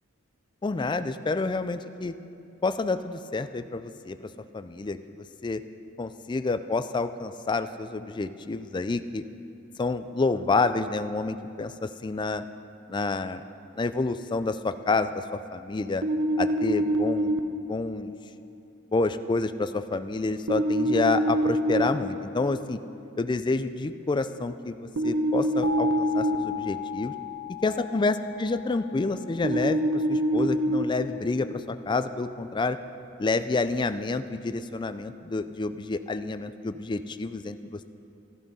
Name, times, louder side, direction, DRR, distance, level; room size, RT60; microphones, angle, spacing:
voice 1, 0.6-2.1 2.6-5.6 6.0-9.2 9.8-12.4 12.9-13.4 13.7-16.0 16.4-17.3 17.7-18.1 18.9-22.8 23.2-27.1 27.6-29.8 30.1-32.8 33.2-37.8, left 3 dB, 20° left, 11 dB, 0.4 m, -28 dB
sound 1, 16.0-17.4 20.5-21.9 25.0-26.4 29.4-30.8, right 1 dB, 75° right, 0.8 m, -25 dB
sound 2, 25.6-30.4, left 6 dB, 40° left, 0.7 m, -36 dB
14.0 x 11.0 x 5.5 m, 2.7 s
head